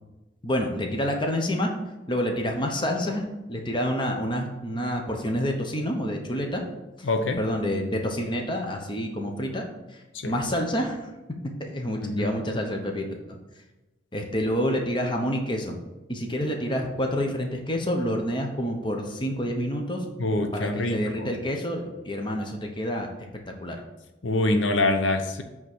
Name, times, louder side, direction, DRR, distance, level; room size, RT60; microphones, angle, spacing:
voice 1, 0.4-1.7 2.1-6.6 7.0-7.1 7.4-9.6 10.2-11.0 11.6-13.4 14.1-15.8 16.1-20.0 20.5-23.8, equal, 25° left, 2 dB, 0.9 m, -28 dB
voice 2, 7.0-7.4 10.1-10.4 12.0-12.3 20.2-21.3 24.2-25.4, left 2 dB, 85° left, 6 dB, 0.7 m, -25 dB
8.0 x 3.7 x 6.1 m, 1.1 s
head